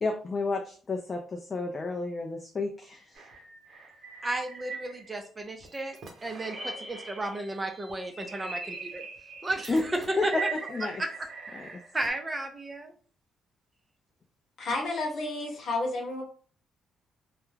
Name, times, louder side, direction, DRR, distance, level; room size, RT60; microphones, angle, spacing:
voice 1, 0.0-3.2 9.7-9.8 10.2-11.0 11.5-11.7, left 3 dB, 35° left, 3 dB, 0.4 m, -31 dB
sound 1, 3.2-5.3 5.6-7.5 7.9-12.1, right 4 dB, 55° right, 0.8 m, -41 dB
voice 2, 4.2-9.0 9.4-10.3 11.0-11.1 11.5-12.9, right 1 dB, 20° right, 4 dB, 0.5 m, -34 dB
voice 3, 14.6-16.2, left 2 dB, 60° left, 1 dB, 1.0 m, -31 dB
2.3 x 2.0 x 3.2 m, 0.42 s
cardioid pair, 90°, 0 cm